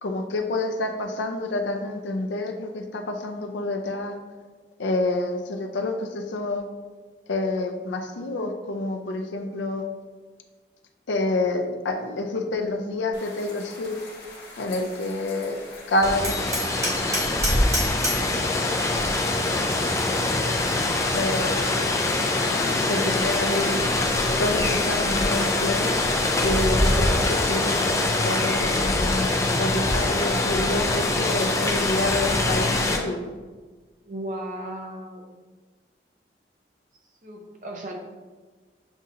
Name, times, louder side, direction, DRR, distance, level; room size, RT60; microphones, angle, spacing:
voice 1, 0.0-4.2 4.8-6.6 7.3-9.8 11.1-14.0 14.6-15.6 15.9-16.4 21.1-21.6 22.9-23.8 24.4-25.9 26.4-33.3, left 2 dB, 90° left, 5 dB, 0.5 m, -28 dB
sound 1, 13.1-27.0, left 2 dB, 65° left, 1.1 m, -43 dB
Rain, 16.0-33.0, left 2 dB, 15° left, 0.3 m, -23 dB
Hammer, 16.2-18.3, right 1 dB, 20° right, 0.9 m, -28 dB
voice 2, 34.0-35.3 37.2-37.9, right 1 dB, 45° right, 1 dB, 0.6 m, -35 dB
7.1 x 2.5 x 2.7 m, 1.4 s
head